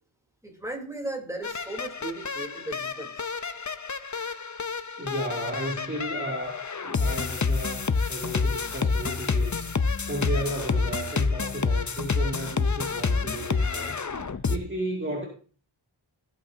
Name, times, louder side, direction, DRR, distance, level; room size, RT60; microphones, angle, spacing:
voice 1, 0.4-3.3, right 2 dB, 5° right, 0 dB, 3.5 m, -36 dB
sound 1, 1.4-14.6, left 4 dB, 35° left, 0.7 m, -28 dB
voice 2, 5.0-14.0 14.5-15.3, right 1 dB, 25° right, -2 dB, 2.4 m, -34 dB
16.0 x 8.4 x 2.8 m, 0.40 s
wide cardioid pair, 50°, 49 cm